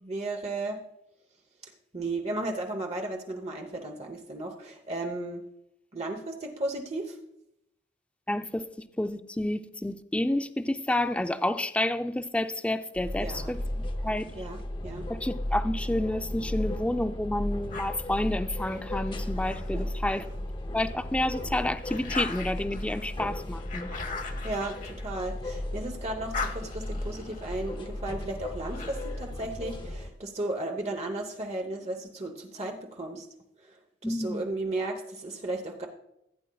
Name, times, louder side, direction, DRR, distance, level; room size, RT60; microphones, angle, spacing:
voice 1, 0.0-0.8 1.6-5.4 5.9-7.2 13.2-13.5 14.3-15.1 19.7-19.9 24.4-33.3 33.6-33.8 34.0-35.9, right 2 dB, 35° right, 2 dB, 0.9 m, -35 dB
voice 2, 8.3-8.7 9.0-14.3 15.2-20.2 20.7-23.9 34.0-34.5, left 1 dB, 5° left, 10 dB, 0.4 m, -30 dB
sound 1, 13.0-30.1, left 1 dB, 30° left, 0.7 m, -35 dB
sound 2, 17.7-20.4 20.9-25.7 26.0-29.3, left 4 dB, 50° left, 1.0 m, -41 dB
15.5 x 8.7 x 2.3 m, 0.82 s
head